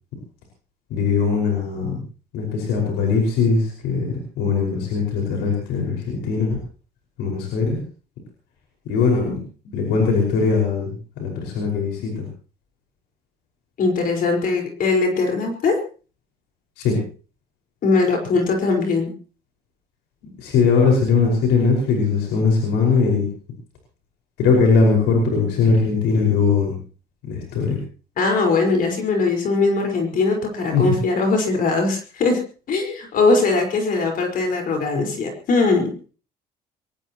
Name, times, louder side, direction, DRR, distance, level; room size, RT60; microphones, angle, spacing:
voice 1, 0.9-2.0 2.3-6.6 7.2-7.8 8.9-12.3 16.8-17.0 20.4-23.3 24.4-26.8 27.2-27.8 30.7-30.9, left 4 dB, 90° left, 0 dB, 5.5 m, -20 dB
voice 2, 13.8-15.8 17.8-19.1 28.2-32.4 32.7-36.0, left 3 dB, 55° left, 3 dB, 5.0 m, -20 dB
23.5 x 19.0 x 3.1 m, 0.38 s
cardioid pair, 110°, 17 cm